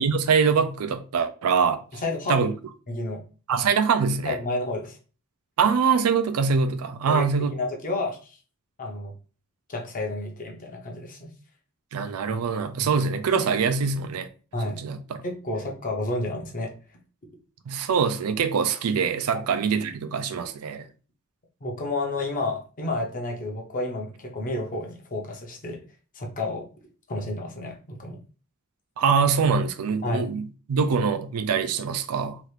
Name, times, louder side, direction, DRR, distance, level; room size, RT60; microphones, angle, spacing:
voice 1, 0.0-1.8 2.3-2.5 3.5-4.4 5.6-7.5 11.9-14.3 14.8-15.2 17.7-20.9 29.0-32.4, right 5 dB, 80° right, 0.4 m, -24 dB
voice 2, 1.9-2.5 2.9-3.2 4.2-5.0 7.1-7.2 7.5-8.4 8.8-9.1 9.7-11.3 12.8-12.9 14.5-14.8 15.2-16.7 19.3-19.5 21.6-25.8 26.1-26.7 27.1-28.2 30.0-30.3, left 2 dB, 40° left, 0.7 m, -30 dB
3.0 x 2.5 x 3.2 m
head